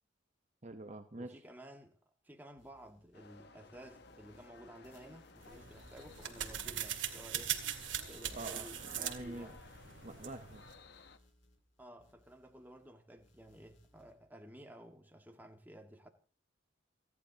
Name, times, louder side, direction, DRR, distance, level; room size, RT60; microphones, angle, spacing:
voice 1, 0.6-1.4 8.3-9.5 10.0-10.6, right 2 dB, 35° right, 1.0 m, -46 dB
voice 2, 1.1-2.0 2.2-7.7 8.1-9.6 11.8-16.1, equal, 10° right, 1.7 m, -54 dB
sound 1, 2.6-3.5 3.7-10.3 10.6-12.9 13.2-14.2, left 1 dB, 75° left, 4.0 m, -67 dB
sound 2, 3.1-11.2, left 4 dB, 55° left, 1.2 m, -57 dB
sound 3, 5.4-10.8, right 10 dB, 75° right, 2.0 m, -41 dB
29.5 x 11.0 x 2.9 m
head